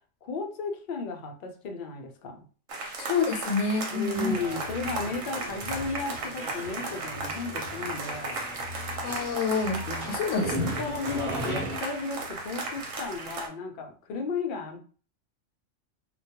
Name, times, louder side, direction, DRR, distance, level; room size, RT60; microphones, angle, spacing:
voice 1, 0.2-2.5 3.9-8.4 9.9-10.1 10.8-14.8, left 3 dB, 60° left, 3 dB, 0.5 m, -34 dB
sound 1, 2.7-13.5, right 3 dB, 80° right, 1.0 m, -36 dB
voice 2, 3.0-4.3 9.0-9.8 10.1-10.7, left 4 dB, 85° left, 3 dB, 1.0 m, -27 dB
sound 2, 4.1-11.8, equal, 50° right, 0.9 m, -38 dB
2.2 x 2.2 x 2.8 m, 0.40 s
omnidirectional pair, 1.3 m